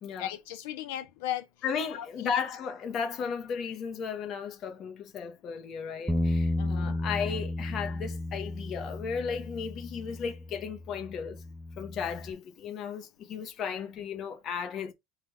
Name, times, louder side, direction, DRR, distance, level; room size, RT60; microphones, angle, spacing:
voice 1, 0.2-1.4 1.9-2.3 6.6-6.9, left 12 dB, 75° left, 0.6 m, -36 dB
voice 2, 1.6-11.4 11.8-14.9, left 6 dB, 35° left, 0.8 m, -35 dB
Bass guitar, 6.1-12.3, left 1 dB, 5° right, 0.3 m, -33 dB
3.6 x 2.3 x 4.4 m
cardioid pair, 160°, 0 cm